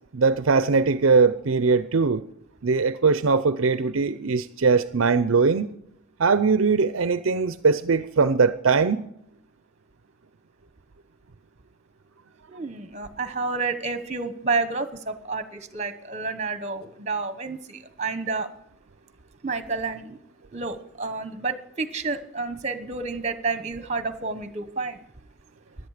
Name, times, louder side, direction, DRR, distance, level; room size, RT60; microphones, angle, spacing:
voice 1, 0.1-2.2 2.6-5.7 6.2-9.0, right 4 dB, 70° right, 0.6 m, -21 dB
voice 2, 12.5-18.5 19.4-20.2 20.5-25.0, right 4 dB, 30° right, 1.2 m, -30 dB
16.5 x 11.5 x 5.0 m
head